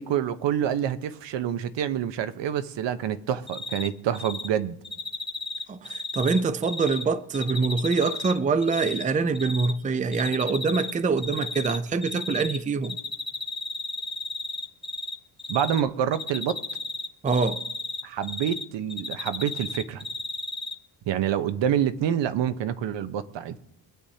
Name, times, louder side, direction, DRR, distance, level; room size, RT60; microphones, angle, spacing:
voice 1, 0.0-4.8 15.5-16.6 18.0-20.1 21.1-23.6, right 9 dB, 70° right, 0.9 m, -27 dB
Cricket, 3.5-3.9 4.1-4.5 4.8-7.0 7.3-9.0 9.3-9.7 10.1-10.9 11.2-12.6 12.8-15.1 15.4-15.8 16.1-18.6 18.9-20.7, left 2 dB, 10° left, 0.8 m, -33 dB
voice 2, 5.7-13.0 17.2-17.6, right 4 dB, 20° right, 0.5 m, -25 dB
23.5 x 8.5 x 2.8 m
cardioid pair, 115°, 44 cm